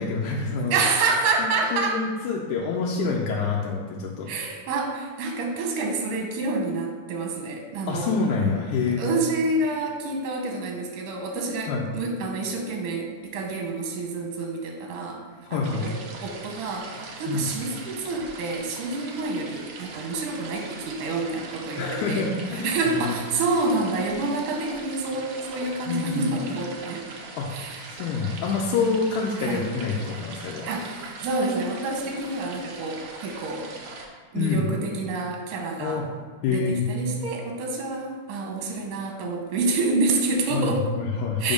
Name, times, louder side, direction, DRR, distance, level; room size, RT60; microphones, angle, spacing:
voice 1, 0.0-0.8 1.4-4.3 7.9-9.0 11.7-11.8 15.4-15.9 17.3-17.5 21.8-23.2 25.9-26.3 27.4-27.6 27.9-30.7 34.3-34.7 35.8-36.1 36.4-36.9 40.5-41.5, left 4 dB, 90° left, -2 dB, 2.1 m, -27 dB
voice 2, 0.7-2.0 4.3-8.1 9.0-15.2 15.5-15.9 16.2-22.3 22.5-27.0 27.5-27.8 29.4-29.7 30.7-33.7 34.3-36.0 36.4-40.9 41.4-41.5, right 3 dB, 90° right, 2 dB, 2.4 m, -28 dB
sound 1, 15.6-34.1, right 3 dB, 70° right, 1.5 m, -41 dB
7.7 x 3.6 x 5.2 m, 1.4 s
omnidirectional pair, 3.5 m